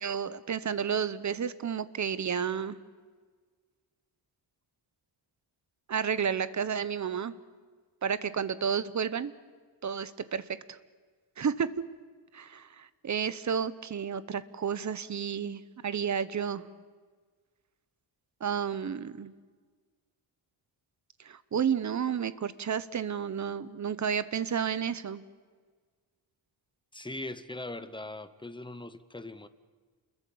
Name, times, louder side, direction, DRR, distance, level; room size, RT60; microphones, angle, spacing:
voice 1, 0.0-2.8 5.9-7.3 8.0-9.3 9.8-10.4 11.4-11.7 12.3-16.7 18.4-19.3 21.2-25.2, right 7 dB, 40° right, 15 dB, 0.8 m, -31 dB
voice 2, 26.9-29.5, left 2 dB, 10° left, 12 dB, 0.7 m, -40 dB
29.0 x 21.5 x 7.1 m, 1.5 s
wide cardioid pair, 175°, 46 cm